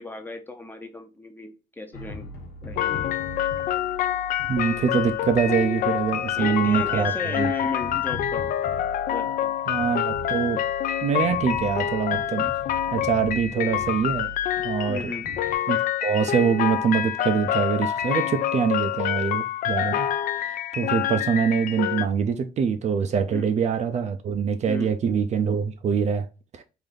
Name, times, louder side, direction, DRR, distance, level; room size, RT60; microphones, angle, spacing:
voice 1, 0.0-2.3 2.6-3.2 6.3-8.5 9.1-9.5 14.9-15.3 23.3-23.5 24.7-24.9, left 3 dB, 10° left, 0.6 m, -35 dB
sound 1, 1.9-15.6, left 1 dB, 85° left, 1.1 m, -41 dB
sound 2, 2.8-22.0, left 11 dB, 55° left, 0.4 m, -27 dB
voice 2, 4.5-7.1 7.4-7.5 9.7-10.6 11.0-12.5 12.9-14.3 14.6-15.1 15.7-20.1 20.3-26.3 26.5-26.6, right 7 dB, 45° right, 0.4 m, -24 dB
3.4 x 2.6 x 3.7 m
cardioid pair, 110°, 17 cm